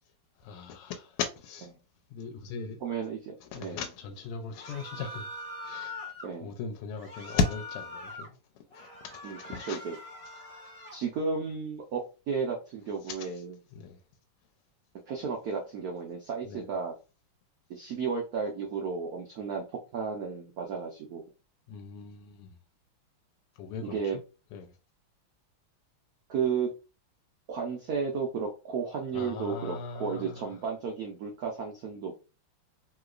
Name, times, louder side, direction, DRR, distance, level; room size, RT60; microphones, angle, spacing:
voice 1, 0.4-1.7 2.1-2.8 3.4-6.0 6.4-9.8 10.3-10.5 13.0-13.4 13.7-14.0 16.4-16.7 21.7-22.6 23.6-24.2 24.5-24.7 29.1-30.6, left 5 dB, 85° left, 1.5 m, -37 dB
voice 2, 2.8-3.8 6.2-6.5 9.2-9.4 9.7-9.9 10.9-13.5 15.1-16.9 17.7-21.2 23.8-24.2 26.3-26.7 27.5-32.2, right 5 dB, 80° right, 0.8 m, -33 dB
sound 1, 4.6-6.3 7.0-8.3 8.7-11.0, left 2 dB, 20° left, 0.9 m, -43 dB
3.2 x 2.9 x 2.4 m
omnidirectional pair, 2.4 m